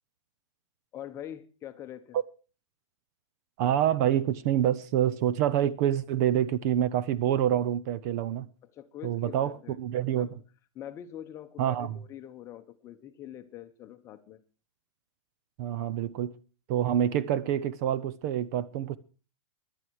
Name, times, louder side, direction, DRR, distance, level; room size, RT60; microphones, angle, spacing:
voice 1, 0.9-2.2 8.7-9.8 10.1-10.4 10.7-14.4, left 11 dB, 15° left, 0.9 m, -44 dB
voice 2, 3.6-8.5 9.0-10.3 11.6-12.0 15.6-16.3 16.7-19.0, right 10 dB, 35° right, 0.7 m, -27 dB
17.5 x 11.5 x 4.7 m
supercardioid pair, 170°, 16 cm